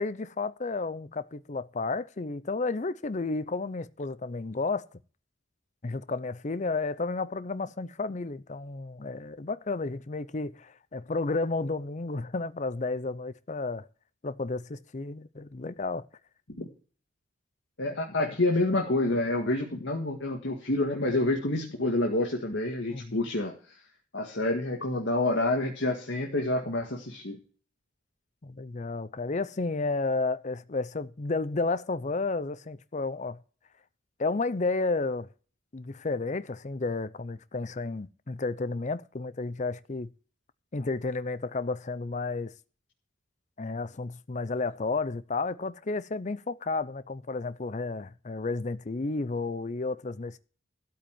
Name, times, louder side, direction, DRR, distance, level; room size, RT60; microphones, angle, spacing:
voice 1, 0.0-4.9 5.8-13.9 14.2-16.1 22.9-23.2 28.4-33.4 34.2-35.3 35.7-40.1 40.7-42.5 43.6-50.4, left 3 dB, 40° left, 0.6 m, -32 dB
voice 2, 17.8-23.8 24.1-27.4, left 2 dB, 75° left, 1.9 m, -28 dB
13.0 x 5.6 x 9.0 m
head